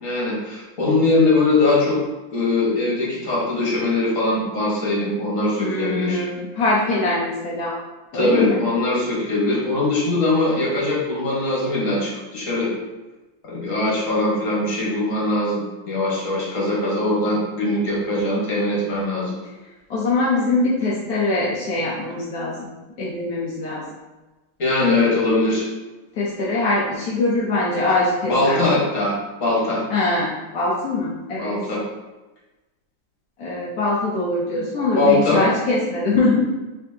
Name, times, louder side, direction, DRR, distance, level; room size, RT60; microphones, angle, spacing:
voice 1, 0.0-2.0 2.3-6.2 8.1-12.7 13.5-19.3 24.6-25.7 28.3-29.8 31.4-31.8 34.5-34.6 34.9-35.4, left 2 dB, 40° left, -5 dB, 1.5 m, -21 dB
voice 2, 5.6-7.8 8.1-8.6 19.9-22.7 23.0-23.8 26.2-28.7 29.9-31.5 33.4-36.5, left 2 dB, 65° left, -6 dB, 0.9 m, -22 dB
4.4 x 3.6 x 2.7 m, 1.1 s
omnidirectional pair, 2.4 m